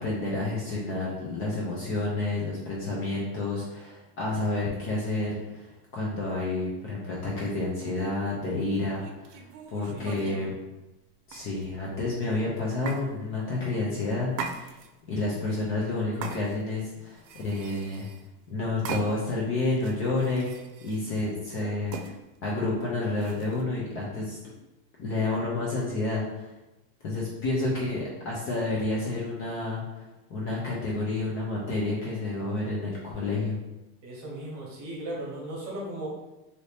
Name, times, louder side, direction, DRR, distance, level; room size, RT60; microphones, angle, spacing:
voice 1, 0.0-10.5 11.3-14.8 15.1-18.1 18.5-20.5 20.8-22.1 22.4-24.4 25.0-26.5 27.0-33.6, left 2 dB, 30° left, -5 dB, 0.5 m, -30 dB
sound 1, 8.9-10.5 11.3-11.9 12.8-13.0 14.3-15.1 16.2-16.8 17.2-18.3 18.8-19.4 19.8-21.0 21.9-22.1 23.2-23.6, right 6 dB, 85° right, 0.6 m, -39 dB
voice 2, 9.9-10.6 21.5-21.8 27.6-27.7 34.0-36.1, right 1 dB, 35° right, -3 dB, 1.0 m, -37 dB
2.8 x 2.7 x 3.2 m, 0.99 s
supercardioid pair, 155°, 48 cm